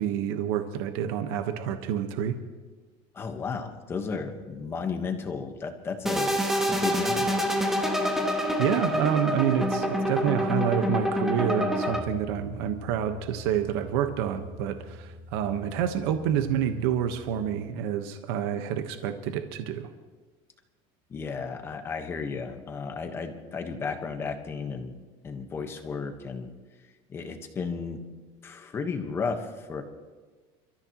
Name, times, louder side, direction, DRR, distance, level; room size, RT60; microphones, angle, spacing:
voice 1, 0.0-2.4 8.6-19.9, right 9 dB, 75° right, 7 dB, 1.2 m, -28 dB
voice 2, 3.1-6.4 6.7-7.3 21.1-25.0 25.2-26.5 27.1-28.0 28.4-29.8, left 5 dB, 20° left, 5 dB, 1.2 m, -33 dB
sound 1, 6.1-12.0, equal, 5° right, 1.2 m, -26 dB
sound 2, 11.9-17.4, left 2 dB, 40° left, 2.1 m, -46 dB
29.0 x 14.0 x 3.0 m, 1.4 s
cardioid pair, 180°, 13 cm